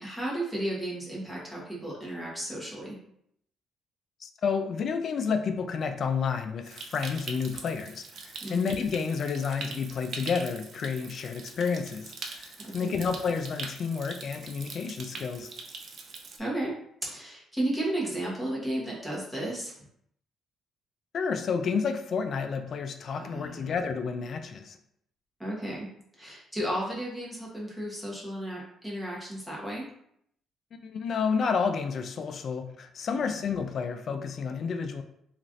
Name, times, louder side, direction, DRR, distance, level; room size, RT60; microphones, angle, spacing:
voice 1, 0.0-3.0 8.4-8.7 12.6-13.0 16.4-16.7 17.0-19.7 23.2-23.6 25.4-25.9 26.2-29.8 33.1-33.4, right 1 dB, 10° right, -5 dB, 1.1 m, -34 dB
voice 2, 4.2-15.5 21.1-24.8 30.8-35.0, left 5 dB, 55° left, 7 dB, 0.3 m, -30 dB
Stream, 6.7-16.4, right 4 dB, 55° right, 0.4 m, -43 dB
3.0 x 2.4 x 2.6 m, 0.72 s
cardioid pair, 95°, 0 cm